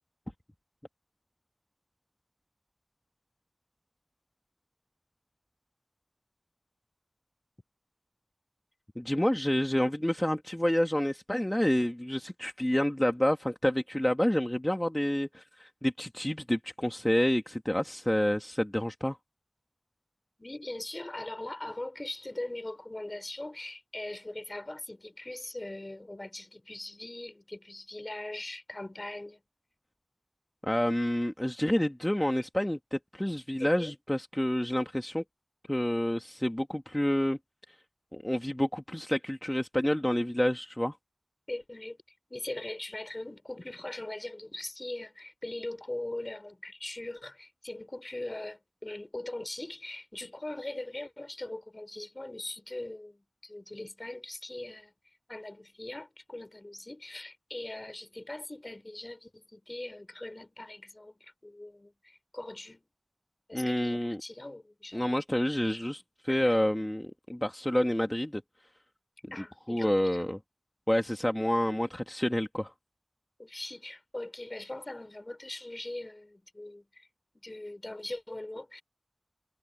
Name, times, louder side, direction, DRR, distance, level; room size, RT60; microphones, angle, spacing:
voice 1, 8.9-19.2 30.6-35.2 35.7-37.4 38.1-40.9 63.5-64.2 64.9-68.4 69.3-70.4 70.9-72.7, left 1 dB, 20° left, 1.5 m, -28 dB
voice 2, 20.4-29.4 33.6-34.0 41.5-42.0 42.3-54.9 55.3-62.9 63.5-65.1 66.3-66.5 69.3-70.2 73.4-77.1 77.3-78.8, left 1 dB, 45° left, 5.0 m, -41 dB
wide cardioid pair, 50°, 0 cm